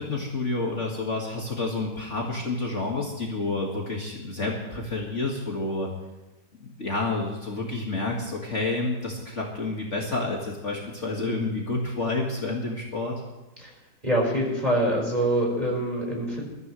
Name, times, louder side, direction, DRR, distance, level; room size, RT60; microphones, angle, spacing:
voice 1, 0.0-5.9 6.6-13.2, left 3 dB, 40° left, -2 dB, 2.1 m, -29 dB
voice 2, 14.0-16.5, right 1 dB, 20° right, -2 dB, 4.8 m, -25 dB
22.5 x 14.0 x 3.2 m, 1.1 s
omnidirectional pair, 1.9 m